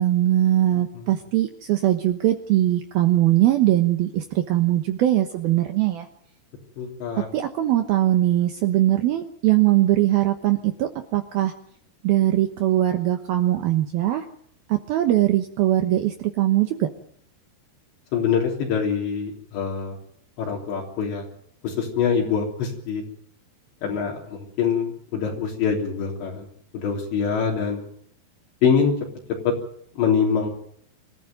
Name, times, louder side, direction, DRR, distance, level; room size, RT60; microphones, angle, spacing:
voice 1, 0.0-6.1 7.3-11.5 12.0-14.2 14.7-16.9, right 14 dB, 70° right, 6 dB, 2.6 m, -21 dB
voice 2, 6.8-7.3 18.1-20.0 20.4-21.3 21.6-23.0 23.8-26.5 26.7-27.8 28.6-28.9 29.5-29.6 30.0-30.5, left 6 dB, 75° left, -2 dB, 5.6 m, -24 dB
25.5 x 14.5 x 9.2 m, 0.65 s
omnidirectional pair, 5.2 m